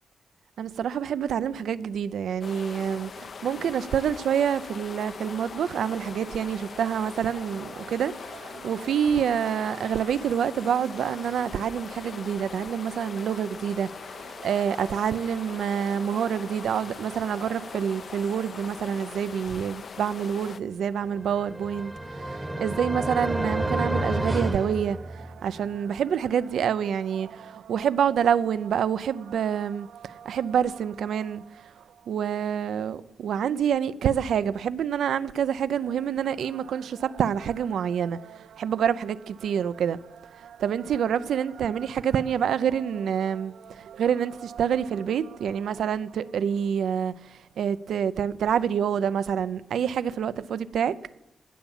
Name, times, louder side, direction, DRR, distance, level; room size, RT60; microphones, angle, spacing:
voice 1, 0.6-51.0, right 8 dB, 85° right, 0.5 m, -27 dB
sound 1, 2.4-20.6, left 5 dB, 55° left, 0.5 m, -41 dB
sound 2, 21.2-25.6, right 1 dB, 10° right, 0.9 m, -30 dB
18.5 x 7.0 x 7.1 m
cardioid pair, 85°, 0 cm